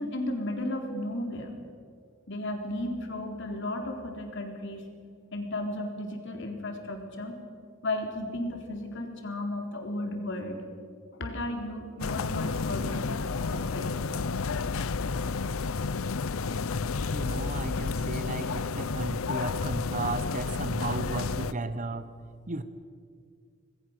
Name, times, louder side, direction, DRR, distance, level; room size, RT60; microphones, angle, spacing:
voice 1, 0.0-1.5 2.3-4.8 5.3-7.4 7.8-10.6 11.2-13.1 13.5-13.9, left 1 dB, 60° left, 3 dB, 3.8 m, -34 dB
sound 1, 12.0-21.5, left 4 dB, 85° left, 0.7 m, -31 dB
voice 2, 17.1-22.1 22.5-22.6, right 2 dB, 35° right, 12 dB, 1.0 m, -34 dB
27.0 x 20.0 x 6.7 m, 2.2 s
head